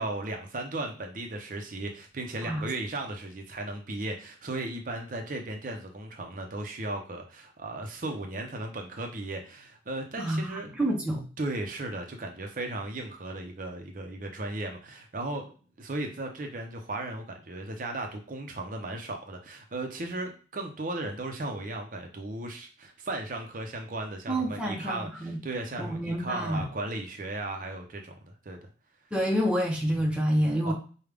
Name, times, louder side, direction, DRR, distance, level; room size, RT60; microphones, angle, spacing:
voice 1, 0.0-10.7 11.4-15.5 15.8-28.6 30.6-30.7, right 2 dB, 45° right, 3 dB, 0.6 m, -36 dB
voice 2, 10.2-11.2 24.3-25.4 25.8-26.7 29.1-30.7, equal, 5° right, -1 dB, 0.7 m, -28 dB
4.9 x 2.2 x 3.4 m, 0.38 s
head